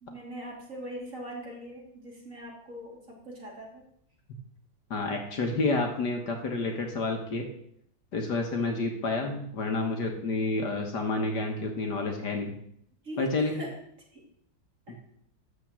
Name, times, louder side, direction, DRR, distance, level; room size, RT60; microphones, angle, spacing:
voice 1, 0.0-3.8 13.0-13.8 14.1-14.2 14.9-15.0, right 1 dB, 40° right, -2 dB, 3.0 m, -41 dB
voice 2, 4.9-7.5 8.1-12.5 13.2-13.6, left 3 dB, 60° left, 3 dB, 1.9 m, -29 dB
13.0 x 4.5 x 7.5 m, 0.69 s
omnidirectional pair, 2.2 m